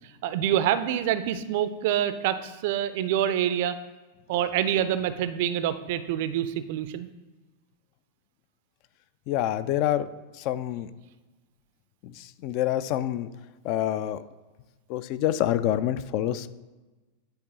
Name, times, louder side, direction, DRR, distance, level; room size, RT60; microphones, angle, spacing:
voice 1, 0.2-3.7 4.3-7.1, right 10 dB, 50° right, 12 dB, 0.4 m, -26 dB
voice 2, 9.3-10.1 10.3-10.9 12.0-13.3 13.6-14.2 14.9-16.5, left 12 dB, 45° left, 14 dB, 0.3 m, -27 dB
10.0 x 3.8 x 2.9 m, 1.2 s
figure-of-eight pair, 90°, 0 cm